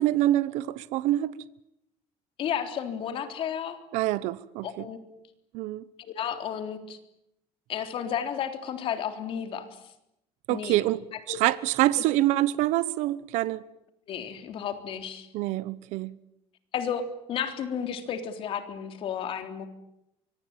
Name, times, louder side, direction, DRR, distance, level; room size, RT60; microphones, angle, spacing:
voice 1, 0.0-1.3 3.9-4.9 5.5-5.8 10.5-11.0 11.3-13.6 15.3-16.1, right 15 dB, 70° right, 1.0 m, -26 dB
voice 2, 2.4-3.8 4.6-5.0 6.0-7.0 7.7-9.7 10.5-10.8 11.3-11.4 14.1-15.3 16.7-17.0 17.3-19.7, left 8 dB, 45° left, 3.5 m, -32 dB
24.5 x 24.0 x 9.0 m
cardioid pair, 155°, 13 cm